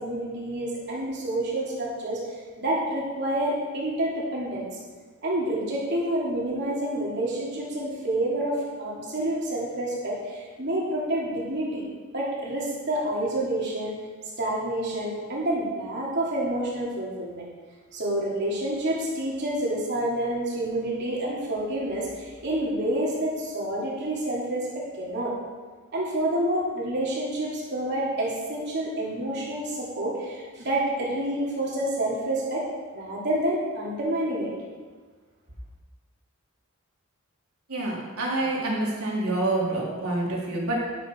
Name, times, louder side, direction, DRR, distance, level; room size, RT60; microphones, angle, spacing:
voice 1, 0.0-4.7 5.2-11.8 12.1-14.0 14.4-17.4 17.9-25.3 25.9-32.6 32.9-34.5, right 1 dB, 55° right, -5 dB, 3.2 m, -28 dB
voice 2, 37.7-40.8, right 2 dB, 90° right, -4 dB, 3.8 m, -27 dB
12.0 x 11.0 x 4.8 m, 1.4 s
head